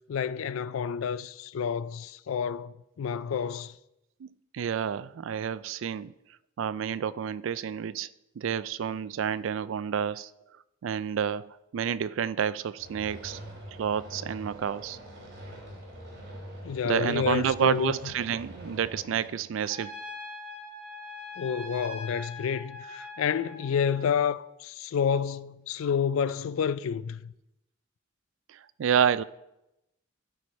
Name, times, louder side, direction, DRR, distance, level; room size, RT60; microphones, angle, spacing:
voice 1, 0.1-3.8 16.6-18.0 21.4-27.3, left 7 dB, 85° left, 0.4 m, -29 dB
voice 2, 4.5-6.1 6.6-8.1 8.4-10.3 10.8-13.4 13.8-15.0 16.8-20.0 28.5-29.2, right 8 dB, 70° right, 0.3 m, -29 dB
sound 1, 12.8-19.3, right 1 dB, 55° right, 3.4 m, -44 dB
Trumpet, 19.7-24.0, left 2 dB, 55° left, 2.8 m, -42 dB
14.5 x 4.9 x 4.2 m
head